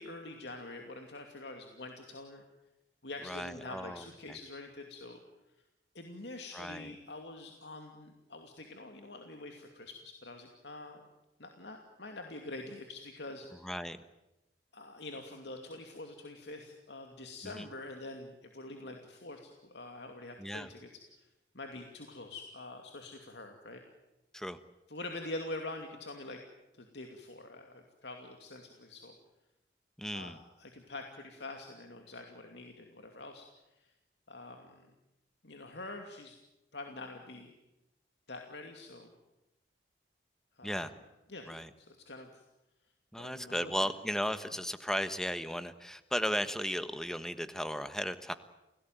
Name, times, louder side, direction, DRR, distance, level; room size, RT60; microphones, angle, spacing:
voice 1, 0.0-2.4 3.0-5.2 5.9-11.0 11.4-13.5 14.7-21.3 21.5-23.8 24.9-26.4 26.7-29.1 30.1-33.5 33.8-33.9 34.3-34.9 35.4-36.4 36.7-37.5 38.3-39.1 40.6-40.8 41.3-41.5 41.8-42.4 43.2-43.7, left 2 dB, 80° left, 3 dB, 2.6 m, -45 dB
voice 2, 3.2-4.4 6.5-6.9 13.6-14.0 17.4-17.7 20.4-20.7 24.3-24.6 30.0-30.4 40.6-40.9 41.5-41.7 43.1-48.3, equal, 5° left, 11 dB, 1.3 m, -36 dB
29.5 x 18.0 x 9.3 m, 0.96 s
head